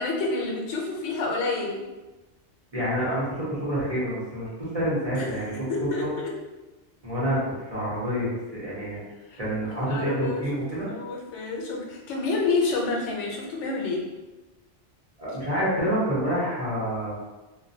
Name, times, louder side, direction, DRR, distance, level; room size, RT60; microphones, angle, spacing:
voice 1, 0.0-1.8 5.1-5.3 5.7-6.3 9.3-9.4 9.8-10.4 10.8-14.0, left 3 dB, 90° left, -1 dB, 0.9 m, -28 dB
voice 2, 2.7-5.7 6.0-6.1 7.0-9.0 9.4-10.9 15.2-17.2, equal, 35° right, -9 dB, 0.8 m, -28 dB
2.2 x 2.1 x 2.6 m, 1.1 s
omnidirectional pair, 1.2 m